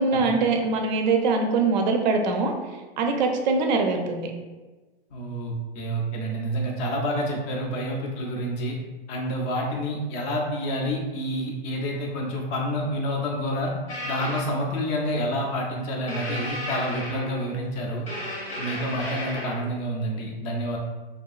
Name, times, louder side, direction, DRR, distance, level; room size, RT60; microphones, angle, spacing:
voice 1, 0.0-2.5 3.0-4.3, right 4 dB, 50° right, 4 dB, 0.4 m, -23 dB
voice 2, 5.1-8.8 9.1-13.7 14.0-18.0 18.6-20.8, equal, 25° left, 0 dB, 0.4 m, -28 dB
sound 1, 13.9-14.5 16.1-17.5 18.1-19.6, left 1 dB, 90° left, 1.1 m, -33 dB
2.6 x 2.2 x 2.3 m, 1.2 s
hypercardioid pair, 120°, 30 cm